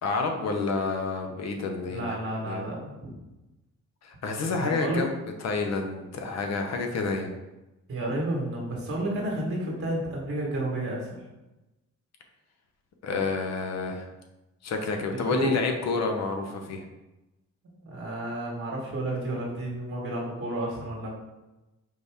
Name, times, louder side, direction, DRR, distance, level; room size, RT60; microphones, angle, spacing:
voice 1, 0.0-2.2 2.4-2.6 4.0-5.2 5.4-7.3 13.0-14.1 14.6-16.8, left 4 dB, 60° left, 3 dB, 0.8 m, -29 dB
voice 2, 1.9-3.1 4.6-5.0 7.9-11.2 15.3-15.6 17.8-21.1, right 1 dB, 45° right, -3 dB, 1.4 m, -31 dB
5.2 x 2.7 x 3.4 m, 1.0 s
cardioid pair, 90°, 30 cm